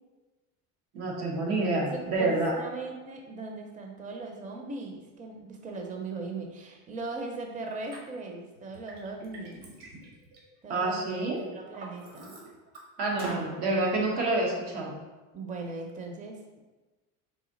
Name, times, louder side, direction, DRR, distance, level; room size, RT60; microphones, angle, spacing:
voice 1, 0.9-2.5 10.7-11.4 13.0-14.9, right 2 dB, 85° right, -2 dB, 1.2 m, -28 dB
voice 2, 2.2-9.6 10.6-12.3 13.1-13.5 15.3-16.6, right 3 dB, 20° right, 2 dB, 0.5 m, -39 dB
Liquid, 7.9-8.0 8.6-11.0 11.4-12.8 13.2-13.5, right 1 dB, 65° right, 1.4 m, -44 dB
4.0 x 2.7 x 3.8 m, 1.2 s
supercardioid pair, 100°, 42 cm